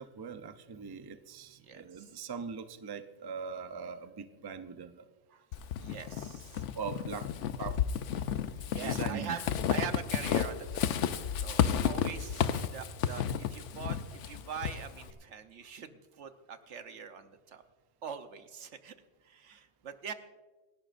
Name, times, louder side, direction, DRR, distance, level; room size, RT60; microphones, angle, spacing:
voice 1, 0.0-5.1 6.7-7.3 7.6-7.8 8.8-9.4, right 6 dB, 30° right, 9 dB, 0.5 m, -41 dB
voice 2, 1.7-2.1 5.3-5.4 5.8-6.7 8.2-8.3 8.7-9.4 9.7-11.1 11.4-13.2 13.5-14.0 14.2-17.6 18.0-18.9 19.2-20.1, right 7 dB, 80° right, 8 dB, 1.2 m, -43 dB
Walk footsteps / Squeak, 5.5-15.1, left 9 dB, 85° left, 1.0 m, -32 dB
27.5 x 11.5 x 2.5 m, 1.3 s
omnidirectional pair, 1.2 m